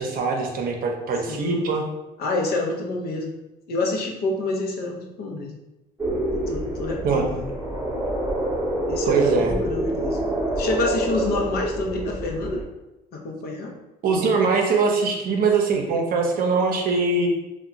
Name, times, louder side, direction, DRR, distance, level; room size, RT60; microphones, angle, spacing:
voice 1, 0.0-1.8 7.0-7.2 9.0-9.5 14.0-17.3, right 4 dB, 60° right, 1 dB, 0.6 m, -22 dB
voice 2, 1.3-1.8 2.2-3.3 3.7-5.6 6.3-7.5 8.9-10.2 10.6-12.6 13.1-13.7, left 2 dB, 65° left, 1 dB, 0.6 m, -28 dB
sound 1, 6.0-12.6, right 1 dB, 15° right, 0.7 m, -27 dB
2.3 x 2.2 x 3.9 m, 1.0 s
cardioid pair, 110°, 17 cm